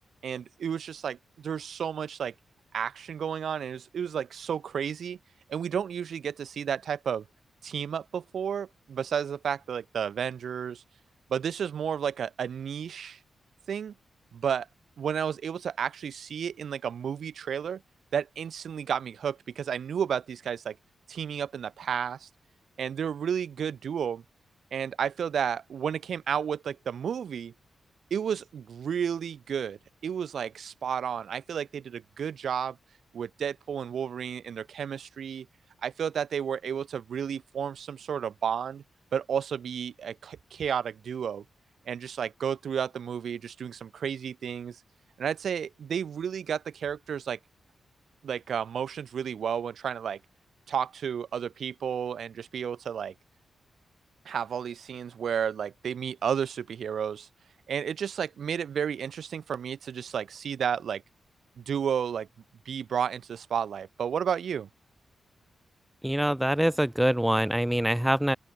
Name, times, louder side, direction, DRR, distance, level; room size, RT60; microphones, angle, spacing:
voice 1, 0.2-2.3 2.7-5.2 5.5-7.2 7.6-10.8 11.3-13.2 13.7-13.9 14.3-14.7 15.0-17.8 18.1-20.8 21.1-22.3 22.8-24.2 24.7-27.5 28.1-32.8 33.1-35.5 35.8-38.8 39.1-41.4 41.9-44.8 45.2-47.4 48.2-50.2 50.7-53.1 54.2-57.3 57.7-61.0 61.6-62.3 62.7-64.7, right 8 dB, 75° right, 7.8 m, -32 dB
voice 2, 66.0-68.4, right 1 dB, 5° right, 0.8 m, -24 dB
open air
cardioid pair, 90°, 0 cm